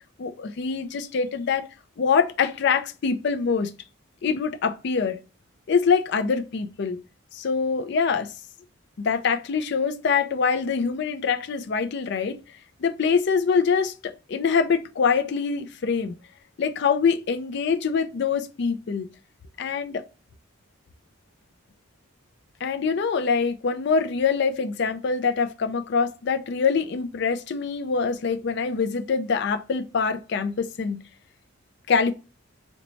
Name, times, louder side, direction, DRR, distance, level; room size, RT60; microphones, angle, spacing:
voice 1, 0.2-1.7 2.0-3.7 4.2-5.2 5.7-7.0 7.3-8.3 9.0-12.4 12.8-16.1 16.6-19.1 19.6-20.0 22.6-31.0 31.9-32.1, left 5 dB, 55° left, 0.4 m, -24 dB
3.9 x 2.2 x 3.0 m
head